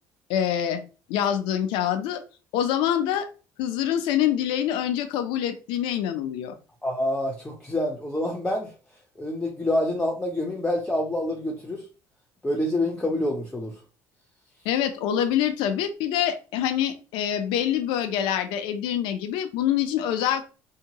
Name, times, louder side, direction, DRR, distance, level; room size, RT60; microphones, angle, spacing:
voice 1, 0.3-0.8 1.1-2.2 2.5-3.3 3.6-6.6 14.6-20.4, left 10 dB, 80° left, 9 dB, 0.5 m, -25 dB
voice 2, 6.8-8.7 9.2-11.8 12.4-13.7, left 1 dB, 10° left, 1 dB, 0.6 m, -27 dB
2.8 x 2.2 x 2.8 m, 0.34 s
cardioid pair, 115°, 8 cm